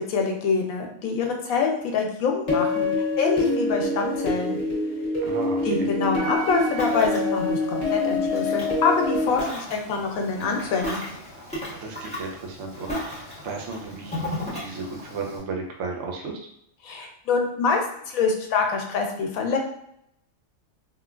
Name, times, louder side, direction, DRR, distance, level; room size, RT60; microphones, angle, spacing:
voice 1, 0.1-4.6 5.6-11.0 16.8-19.6, left 5 dB, 90° left, 2 dB, 1.0 m, -25 dB
sound 1, 2.5-9.3, left 2 dB, 35° left, 1.0 m, -25 dB
voice 2, 5.2-5.9 11.7-14.3 14.5-16.4, right 4 dB, 65° right, 1 dB, 0.8 m, -35 dB
Ocean, 6.4-15.4, left 1 dB, 5° left, 0.7 m, -36 dB
3.6 x 2.2 x 2.3 m, 0.73 s
omnidirectional pair, 1.4 m